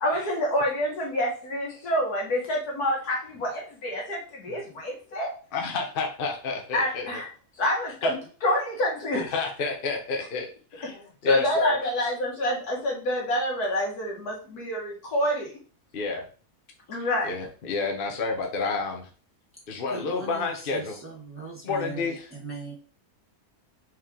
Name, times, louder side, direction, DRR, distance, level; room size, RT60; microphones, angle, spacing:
voice 1, 0.0-5.3 6.7-7.3 7.6-9.3 11.2-15.5 16.9-17.4, left 1 dB, 90° left, -1 dB, 2.0 m, -27 dB
voice 2, 5.5-7.1 8.0-8.1 9.1-11.8 15.9-16.2 17.0-19.1 19.7-21.0 21.6-22.3, left 4 dB, 45° left, 2 dB, 0.9 m, -30 dB
voice 3, 19.9-22.7, right 3 dB, 10° right, -4 dB, 1.2 m, -39 dB
4.7 x 3.1 x 3.6 m, 0.38 s
omnidirectional pair, 1.6 m